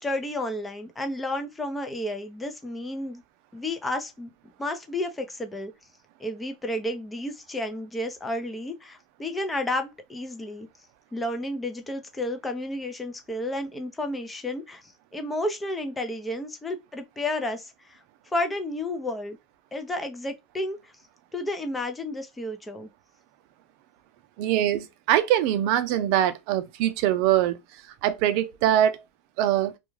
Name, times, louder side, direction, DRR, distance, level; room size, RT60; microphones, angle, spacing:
voice 1, 0.0-3.2 3.5-4.3 4.6-5.7 6.2-10.7 11.1-18.0 18.3-19.4 19.7-20.9 21.3-22.9, left 1 dB, 15° left, 0.6 m, -31 dB
voice 2, 24.4-29.0 29.4-29.7, right 12 dB, 65° right, 0.4 m, -23 dB
2.3 x 2.3 x 3.1 m
supercardioid pair, 115°, 0 cm